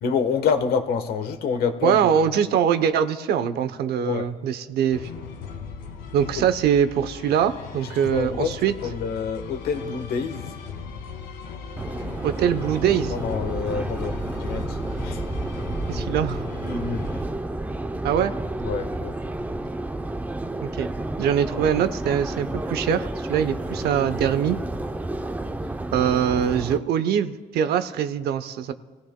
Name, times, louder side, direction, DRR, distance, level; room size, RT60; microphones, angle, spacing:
voice 1, 0.0-2.2 4.0-4.3 6.4-6.5 8.1-8.5 8.8-10.5 13.1-15.2 16.6-17.1 18.6-19.2, left 5 dB, 65° left, 8 dB, 1.2 m, -27 dB
voice 2, 1.8-5.1 6.1-8.7 12.2-13.1 15.9-16.4 18.0-18.3 20.6-20.9 21.2-24.6 25.9-28.7, right 8 dB, 70° right, 11 dB, 0.8 m, -23 dB
sound 1, 4.9-17.2, left 6 dB, 90° left, 1.6 m, -38 dB
Subway metro underground, 11.8-26.8, right 2 dB, 10° right, 0.5 m, -30 dB
28.0 x 16.0 x 2.2 m, 1.4 s
cardioid pair, 110°, 17 cm